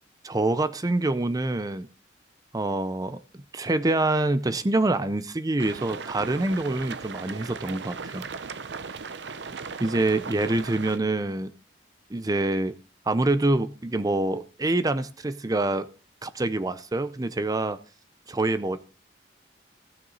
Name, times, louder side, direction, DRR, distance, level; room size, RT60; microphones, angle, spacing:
voice 1, 0.2-1.9 2.5-3.2 3.5-8.3 9.8-11.5 12.1-12.7 13.1-15.9 16.2-17.8 18.3-18.8, right 2 dB, 20° right, 0.5 m, -26 dB
sound 1, 5.6-11.0, right 5 dB, 70° right, 0.7 m, -38 dB
14.5 x 9.2 x 4.0 m
head